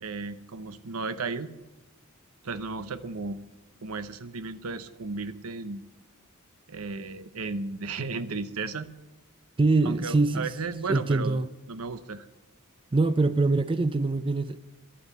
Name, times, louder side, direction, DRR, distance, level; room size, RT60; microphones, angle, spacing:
voice 1, 0.0-1.5 2.4-3.4 3.8-5.8 6.7-8.9 9.8-11.4 11.7-12.3, right 4 dB, 75° right, 0.8 m, -34 dB
voice 2, 9.6-10.5 10.9-11.5 12.9-14.6, right 3 dB, 25° right, 0.4 m, -24 dB
12.0 x 8.7 x 8.2 m
head